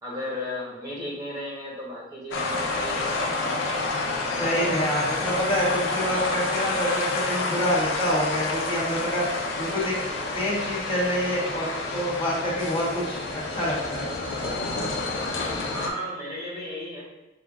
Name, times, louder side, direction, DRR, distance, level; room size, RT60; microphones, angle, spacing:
voice 1, 0.0-3.5 15.7-17.1, left 1 dB, 20° right, -6 dB, 1.0 m, -34 dB
sound 1, 2.3-15.9, left 3 dB, 85° left, 0.7 m, -29 dB
voice 2, 4.4-9.2 9.6-9.9 10.3-13.2 13.5-14.1, equal, 30° left, -8 dB, 1.2 m, -27 dB
6.7 x 2.4 x 2.4 m, 1.0 s
head